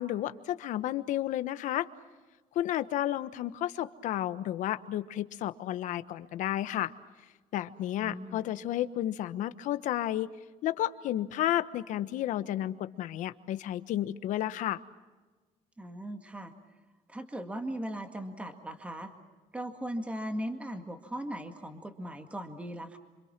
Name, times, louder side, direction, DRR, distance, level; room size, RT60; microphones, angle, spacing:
voice 1, 0.0-1.9 2.5-6.9 7.5-10.3 10.6-14.8, left 13 dB, 65° left, 12 dB, 1.2 m, -32 dB
voice 2, 8.0-8.4 15.8-16.5 17.1-19.1 19.5-23.0, right 1 dB, 10° right, 6 dB, 1.9 m, -38 dB
29.0 x 26.0 x 6.0 m, 1.3 s
cardioid pair, 155°, 14 cm